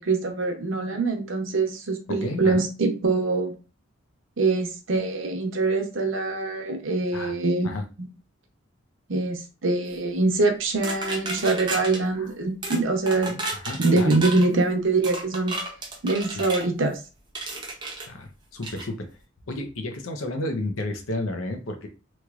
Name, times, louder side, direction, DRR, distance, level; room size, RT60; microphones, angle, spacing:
voice 1, 0.0-3.6 4.4-7.7 8.0-8.1 9.1-13.4 13.8-15.6 16.0-17.0, right 3 dB, 70° right, 4 dB, 0.7 m, -24 dB
voice 2, 2.2-2.5 7.1-7.3 7.6-7.8 13.3-14.2 18.1-19.1 19.5-21.9, left 1 dB, 80° left, 6 dB, 0.7 m, -32 dB
sound 1, 10.8-12.0 12.6-12.8 13.1-14.5 15.0-16.7 17.4-18.1 18.6-18.9, right 2 dB, 20° right, 0.6 m, -33 dB
3.1 x 3.0 x 2.4 m, 0.31 s
head